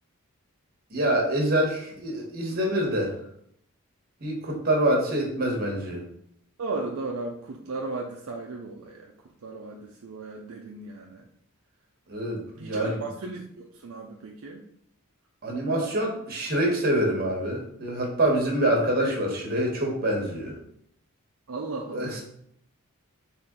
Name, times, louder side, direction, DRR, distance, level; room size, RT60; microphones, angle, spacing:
voice 1, 0.9-3.2 4.2-6.0 12.1-13.0 15.4-20.5 21.9-22.2, right 1 dB, 45° right, 0 dB, 1.2 m, -26 dB
voice 2, 6.6-9.1 9.4-11.3 12.6-14.6 19.0-19.2 21.5-22.2, right 3 dB, 65° right, 0 dB, 0.5 m, -35 dB
4.2 x 3.1 x 3.7 m, 0.70 s
head